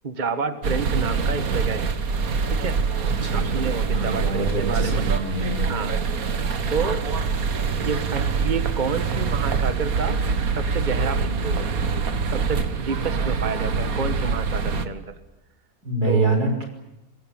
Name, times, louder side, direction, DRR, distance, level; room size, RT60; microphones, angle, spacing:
voice 1, 0.0-2.0 2.5-2.8 3.3-5.1 5.7-6.0 6.7-7.2 7.8-10.2 10.5-11.7 12.3-15.1 16.0-16.4, right 5 dB, 30° right, 10 dB, 1.6 m, -29 dB
sound 1, 0.6-14.9, right 5 dB, 65° right, 1.9 m, -25 dB
voice 2, 3.0-3.5 3.9-6.0 15.8-16.6, right 2 dB, 85° right, 5 dB, 6.3 m, -25 dB
25.5 x 21.0 x 8.9 m, 0.88 s
omnidirectional pair, 1.6 m